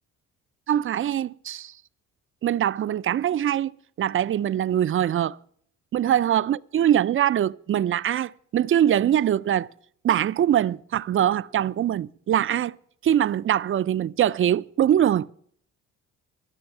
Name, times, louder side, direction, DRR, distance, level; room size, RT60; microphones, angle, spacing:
voice 1, 0.7-1.7 2.4-3.7 4.0-5.4 5.9-9.7 10.0-12.8 13.0-15.3, right 10 dB, 45° right, 0.4 m, -23 dB
13.5 x 6.3 x 8.9 m
cardioid pair, 90°, 30 cm